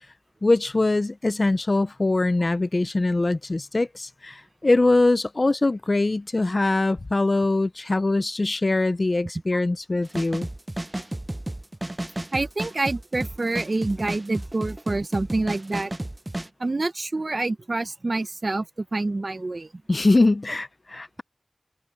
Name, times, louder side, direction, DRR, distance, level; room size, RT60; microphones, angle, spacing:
voice 1, 0.4-10.5 19.9-21.2, left 2 dB, 65° left, 0.5 m, -22 dB
sound 1, 10.0-16.5, right 1 dB, 35° right, 0.6 m, -32 dB
voice 2, 12.3-15.9 16.6-18.7 18.9-19.7, right 2 dB, 75° right, 0.7 m, -27 dB
open air
wide cardioid pair, 55°, 0 cm